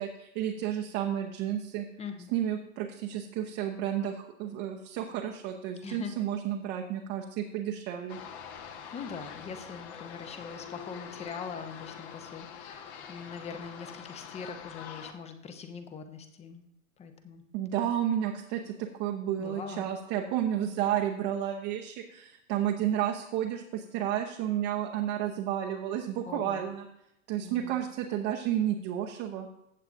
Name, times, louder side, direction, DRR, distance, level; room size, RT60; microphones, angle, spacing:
voice 1, 0.0-1.9 2.3-8.2 17.5-26.9 27.3-29.5, right 10 dB, 35° right, 2 dB, 0.9 m, -31 dB
voice 2, 2.0-2.3 5.8-6.1 8.6-16.6 17.0-17.4 19.4-19.9 26.3-26.7 27.4-27.8, left 6 dB, 15° left, 8 dB, 0.8 m, -42 dB
sound 1, 8.1-15.1, left 7 dB, 50° left, 1.3 m, -45 dB
15.0 x 8.0 x 2.6 m, 0.80 s
hypercardioid pair, 115°, 41 cm